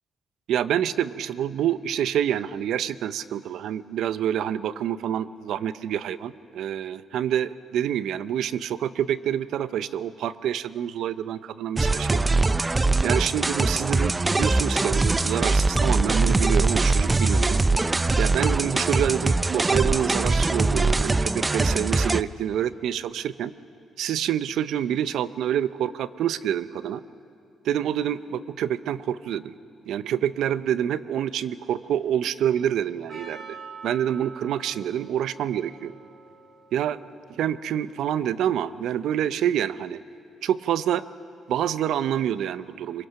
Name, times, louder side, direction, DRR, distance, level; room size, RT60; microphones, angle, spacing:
voice 1, 0.5-12.2 13.0-17.6 18.2-23.5 24.0-27.0 27.6-29.5 29.9-33.6 33.8-35.9 36.7-37.0 37.3-40.0 40.4-41.0 41.5-43.1, right 10 dB, 80° right, 15 dB, 0.6 m, -27 dB
sound 1, 11.8-22.2, right 3 dB, 20° right, 0.4 m, -22 dB
Percussion, 33.1-38.3, right 5 dB, 50° right, 5.4 m, -46 dB
24.0 x 21.0 x 5.8 m, 2.5 s
cardioid pair, 90°, 0 cm